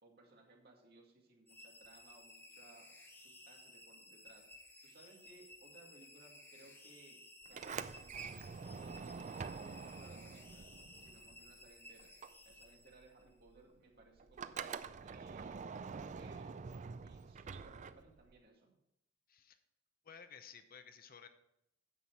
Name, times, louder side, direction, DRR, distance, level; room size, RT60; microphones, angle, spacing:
voice 1, 0.0-4.5 4.8-7.2 7.5-10.7 11.0-12.1 12.4-15.6 15.9-18.8, right 2 dB, 55° right, 0 dB, 2.1 m, -62 dB
sound 1, 1.5-13.3, left 1 dB, 10° left, 1.3 m, -58 dB
Sliding door, 7.4-11.7 12.0-18.4, right 5 dB, 40° right, 0.4 m, -46 dB
voice 2, 20.0-21.3, left 7 dB, 50° left, 9 dB, 0.8 m, -55 dB
9.8 x 7.2 x 4.7 m, 0.80 s
head